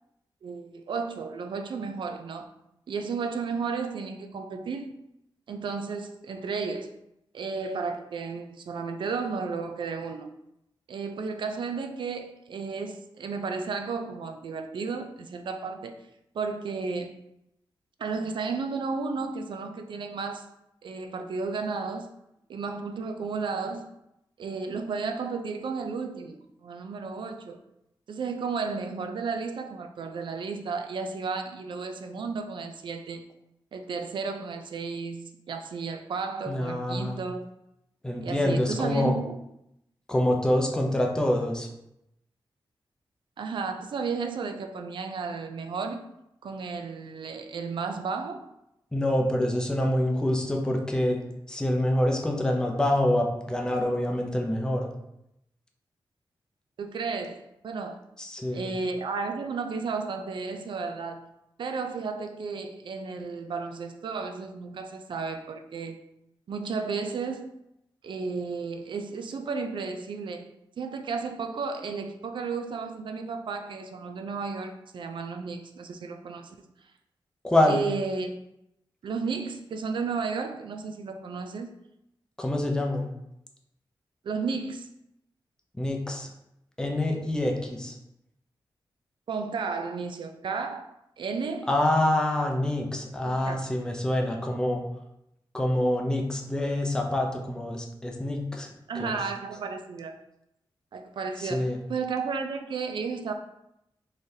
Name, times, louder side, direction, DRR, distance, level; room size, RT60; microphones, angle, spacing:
voice 1, 0.4-2.5 2.9-5.0 5.5-6.9 7.3-10.3 10.9-16.0 16.3-17.2 18.0-20.5 20.8-22.1 22.5-23.9 24.4-27.6 28.1-33.3 33.7-37.5 38.2-39.4 43.4-46.1 46.4-48.5 56.8-58.0 58.5-61.3 61.6-66.0 66.5-67.5 68.0-70.5 70.8-76.6 77.7-78.3 79.0-81.8 84.2-84.9 89.3-90.9 91.2-91.7 93.2-93.6 98.9-100.2 100.9-103.3, right 4 dB, 65° right, 0.4 m, -33 dB
voice 2, 36.5-37.2 38.0-39.2 40.1-41.7 48.9-54.9 58.2-58.7 77.4-77.8 82.4-83.1 85.8-86.3 86.8-88.0 91.7-94.8 95.5-98.7 98.9-99.2 101.4-101.8, left 1 dB, 10° left, 0.5 m, -26 dB
3.8 x 3.2 x 2.7 m
wide cardioid pair, 110°, 9 cm